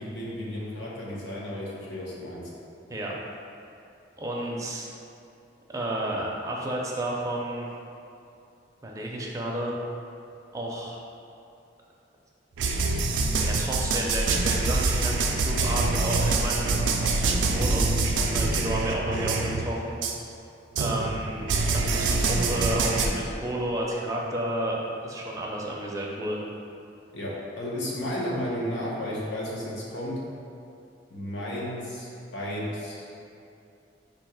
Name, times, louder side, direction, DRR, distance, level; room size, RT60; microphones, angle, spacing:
voice 1, 0.0-2.5 27.1-30.2 31.1-33.1, left 1 dB, 75° left, -5 dB, 0.9 m, -33 dB
voice 2, 4.2-4.9 5.7-7.7 8.8-9.7 10.5-11.0 13.4-16.9 17.5-20.0 20.7-21.4 21.7-26.4, right 1 dB, 20° right, -3 dB, 0.5 m, -31 dB
sound 1, 12.6-19.7 20.0-20.1 20.7-23.1, right 3 dB, 80° right, 0.4 m, -25 dB
3.5 x 2.8 x 4.7 m, 2.7 s
head